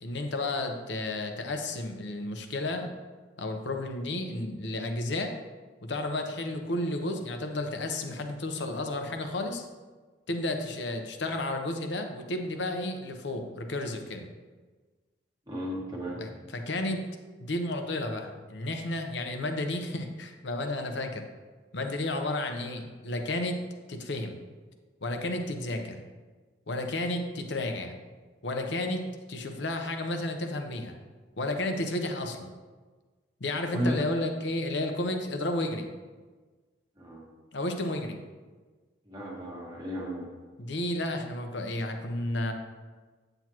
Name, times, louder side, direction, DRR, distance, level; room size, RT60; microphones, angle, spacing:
voice 1, 0.0-2.9 3.4-5.3 5.8-9.7 10.3-14.3 16.2-17.0 17.4-21.2 21.7-23.6 23.9-24.4 25.0-26.0 26.7-28.0 28.4-30.9 31.4-32.5 33.4-35.9 37.5-38.2 40.6-42.5, left 1 dB, 65° left, 5 dB, 0.9 m, -32 dB
voice 2, 15.5-16.4 33.7-34.0 37.0-37.2 39.0-40.3, equal, 20° right, -2 dB, 1.5 m, -33 dB
8.8 x 8.0 x 3.0 m, 1.3 s
head